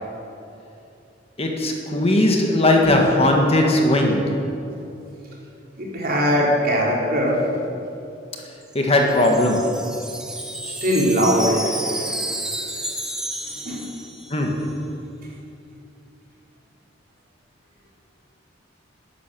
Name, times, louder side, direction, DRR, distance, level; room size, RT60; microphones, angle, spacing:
voice 1, 1.4-4.4 8.7-9.9 14.3-14.8, left 1 dB, 30° left, 1 dB, 1.7 m, -19 dB
voice 2, 5.8-7.4 10.6-12.2 13.6-13.8, equal, 50° right, -4 dB, 4.1 m, -21 dB
Wind chime, 8.6-14.6, right 1 dB, 5° right, 1.2 m, -31 dB
13.0 x 10.0 x 9.3 m, 2.8 s
head